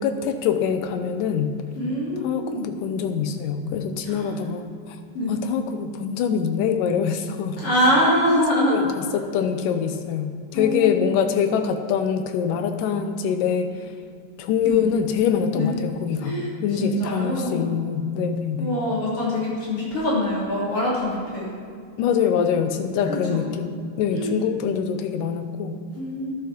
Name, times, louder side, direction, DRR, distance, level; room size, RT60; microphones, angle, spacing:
voice 1, 0.0-1.6 2.2-4.7 5.3-7.6 8.7-13.7 14.4-18.8 22.0-25.8, left 7 dB, 80° left, 7 dB, 2.4 m, -24 dB
voice 2, 1.8-2.6 4.0-4.3 5.1-5.3 7.6-8.8 10.5-11.0 14.6-14.8 15.5-15.7 16.2-16.5 16.8-17.7 18.6-21.5 23.1-23.5 24.1-24.3 25.9-26.3, left 1 dB, 45° left, -6 dB, 4.0 m, -24 dB
11.0 x 8.7 x 6.1 m, 2.3 s
omnidirectional pair, 3.9 m